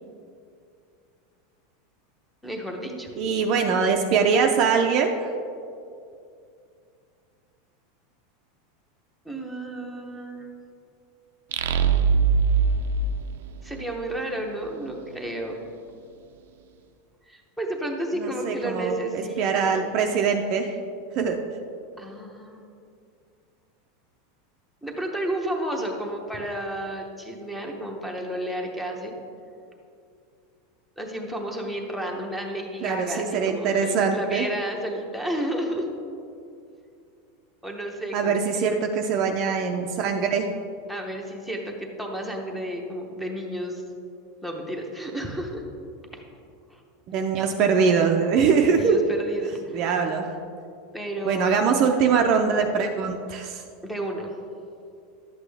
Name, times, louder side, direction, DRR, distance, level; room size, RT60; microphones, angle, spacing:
voice 1, 2.4-3.1 9.2-10.5 13.6-15.7 17.3-19.9 22.0-22.7 24.8-29.1 31.0-35.9 37.6-38.7 40.9-43.8 44.4-45.6 46.1-46.2 46.7-46.8 48.7-49.8 50.9-51.6 53.8-54.3, right 1 dB, ahead, 1 dB, 0.8 m, -32 dB
voice 2, 3.2-5.3 18.2-20.8 21.2-21.4 32.8-34.5 38.1-40.5 47.1-49.0 49.7-50.4 51.2-53.6, right 6 dB, 35° right, 3 dB, 0.5 m, -23 dB
sound 1, 11.5-14.1, right 5 dB, 90° right, 0.5 m, -22 dB
11.5 x 8.2 x 3.4 m, 2.5 s
supercardioid pair, 175°, 0 cm